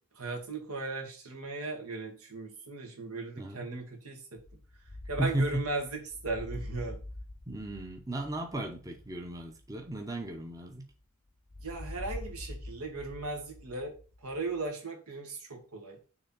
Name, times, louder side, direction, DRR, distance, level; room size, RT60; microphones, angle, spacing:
voice 1, 0.1-4.4 5.1-7.0 11.6-13.9 14.2-16.0, right 3 dB, 80° right, 2.0 m, -37 dB
voice 2, 3.4-3.7 5.2-5.6 7.5-10.9, right 1 dB, 15° right, 0.7 m, -35 dB
sound 1, 4.4-11.0 11.5-14.7, left 1 dB, 25° left, 0.5 m, -45 dB
6.6 x 3.4 x 5.8 m
head